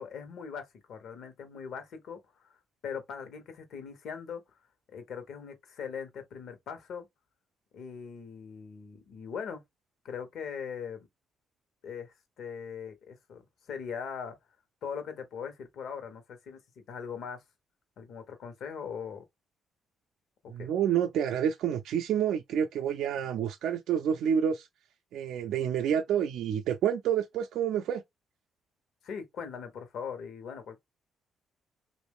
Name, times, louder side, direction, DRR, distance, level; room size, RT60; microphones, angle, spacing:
voice 1, 0.0-2.6 2.8-4.4 4.9-7.1 7.7-9.6 10.0-11.1 11.8-14.4 14.8-17.4 18.0-19.2 20.4-20.7 29.0-30.8, left 6 dB, 75° left, 1.1 m, -40 dB
voice 2, 20.5-24.7 25.1-28.0, right 9 dB, 80° right, 0.4 m, -28 dB
3.1 x 2.5 x 3.4 m
cardioid pair, 90°, 0 cm